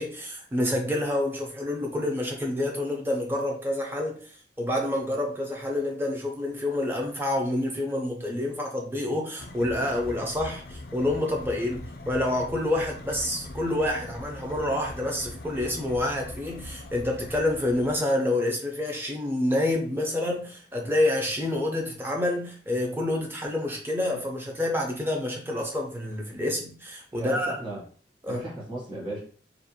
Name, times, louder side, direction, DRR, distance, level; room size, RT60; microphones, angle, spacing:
voice 1, 0.0-4.2 4.6-11.8 12.1-27.6 28.2-28.4, left 1 dB, 10° right, 0 dB, 0.4 m, -28 dB
sound 1, 9.4-18.0, left 2 dB, 55° left, 0.4 m, -41 dB
voice 2, 27.2-27.8 28.3-29.2, right 2 dB, 30° right, -5 dB, 1.1 m, -35 dB
2.5 x 2.1 x 2.7 m, 0.43 s
head